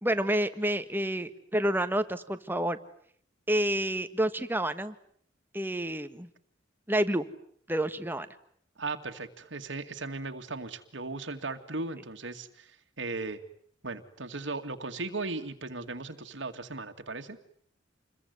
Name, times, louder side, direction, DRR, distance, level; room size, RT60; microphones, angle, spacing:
voice 1, 0.0-2.8 3.5-4.9 5.5-6.3 6.9-7.3 7.7-8.3, right 1 dB, 10° right, 10 dB, 1.5 m, -29 dB
voice 2, 8.8-12.7 13.0-13.4 13.8-17.4, right 3 dB, 70° right, 5 dB, 2.2 m, -37 dB
28.0 x 22.0 x 9.4 m, 0.65 s
head